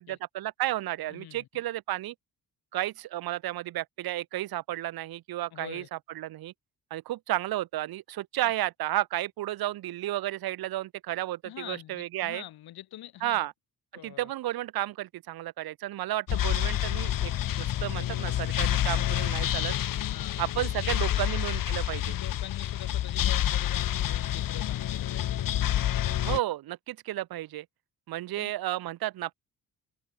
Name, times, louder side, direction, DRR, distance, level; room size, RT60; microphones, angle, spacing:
voice 1, 0.3-2.1 2.7-6.5 6.9-12.4 13.2-13.5 14.0-19.7 20.4-22.2 26.1-27.7 28.1-29.3, right 14 dB, 75° right, 1.0 m, -32 dB
voice 2, 1.1-1.5 5.5-5.9 8.4-8.5 11.4-13.5 13.9-14.3 20.0-20.4 20.9-21.4 22.0-25.4 28.4-28.5, left 13 dB, 85° left, 2.4 m, -45 dB
sound 1, 16.3-26.4, left 12 dB, 60° left, 1.3 m, -28 dB
cardioid pair, 145°, 37 cm